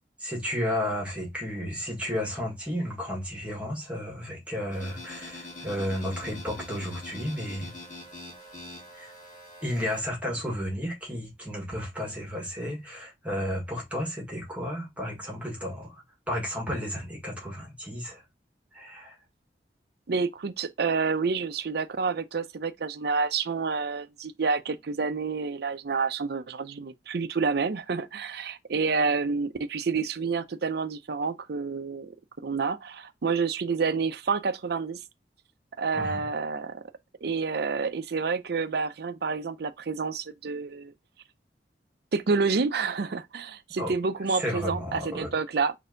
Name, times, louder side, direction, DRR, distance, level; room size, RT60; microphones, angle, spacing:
voice 1, 0.2-7.7 9.0-9.1 9.6-16.0 16.3-18.2 18.7-19.1 35.9-36.3 43.8-43.9 44.4-45.3, equal, 10° right, 1.7 m, -33 dB
sound 1, 4.7-10.0, left 2 dB, 45° left, 1.4 m, -44 dB
voice 2, 20.1-32.1 32.4-35.0 35.8-36.8 37.2-40.9 42.1-45.7, right 4 dB, 65° right, 0.5 m, -28 dB
4.2 x 2.7 x 3.8 m
head